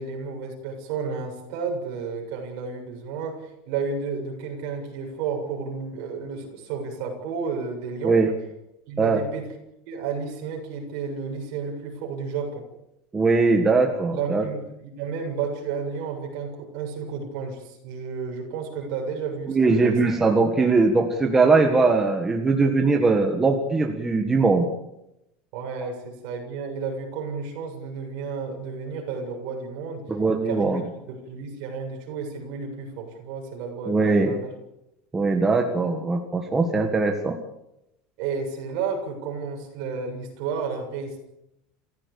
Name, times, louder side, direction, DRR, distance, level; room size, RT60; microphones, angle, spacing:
voice 1, 0.0-8.2 8.9-9.5 9.9-12.7 14.1-20.0 25.5-30.1 30.4-34.5 38.2-41.2, right 5 dB, 50° right, 2 dB, 7.4 m, -32 dB
voice 2, 13.1-14.4 19.5-24.7 30.1-30.8 33.9-34.3 35.1-37.4, right 3 dB, 10° right, 3 dB, 1.6 m, -20 dB
28.0 x 15.5 x 8.7 m, 0.87 s
cardioid pair, 180°, 4 cm